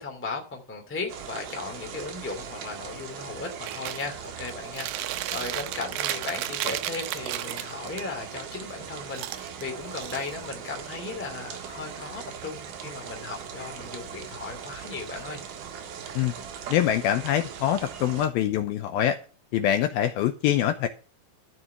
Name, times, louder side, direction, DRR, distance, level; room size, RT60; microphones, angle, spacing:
voice 1, 0.0-15.4, left 4 dB, 5° left, 1.8 m, -36 dB
sound 1, 1.1-18.3, right 7 dB, 60° right, 2.8 m, -40 dB
Chewing mastication, 3.6-4.1 4.5-8.0 9.1-10.6, right 14 dB, 85° right, 2.0 m, -33 dB
voice 2, 16.7-19.2 19.5-20.9, left 11 dB, 75° left, 2.4 m, -24 dB
13.5 x 6.4 x 5.7 m
omnidirectional pair, 4.8 m